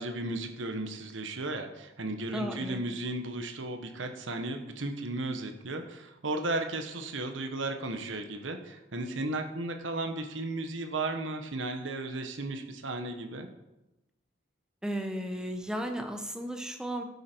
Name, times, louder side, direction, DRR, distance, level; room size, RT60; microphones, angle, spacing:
voice 1, 0.0-13.5, right 2 dB, 75° right, 6 dB, 1.2 m, -35 dB
voice 2, 2.3-2.8 14.8-17.0, equal, 5° right, 4 dB, 1.0 m, -34 dB
11.5 x 8.4 x 4.5 m, 0.97 s
head